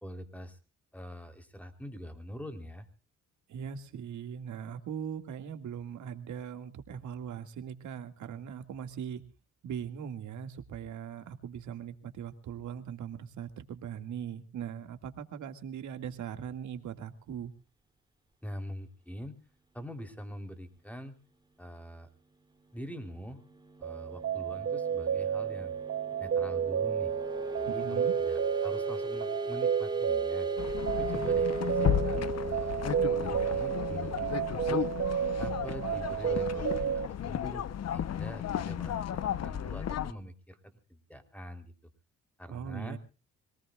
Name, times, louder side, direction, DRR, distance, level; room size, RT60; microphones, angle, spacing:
voice 1, 0.0-0.6 0.9-2.9 18.4-19.3 19.7-21.2 21.6-22.1 22.7-23.4 23.8-25.7 26.2-27.1 27.5-30.5 30.9-32.8 33.2-34.9 35.4-37.6 37.9-41.7 42.4-43.0, equal, 5° left, 8 dB, 3.7 m, -44 dB
voice 2, 3.5-9.2 9.6-17.5 27.6-28.1 42.5-43.0, right 8 dB, 75° right, 8 dB, 2.2 m, -40 dB
sound 1, 22.8-35.3, right 1 dB, 15° right, 3.1 m, -39 dB
sound 2, 23.8-37.1, right 8 dB, 50° right, 0.9 m, -31 dB
sound 3, 30.6-40.1, left 9 dB, 55° left, 1.0 m, -34 dB
25.5 x 18.5 x 2.5 m, 0.35 s
cardioid pair, 90°, 30 cm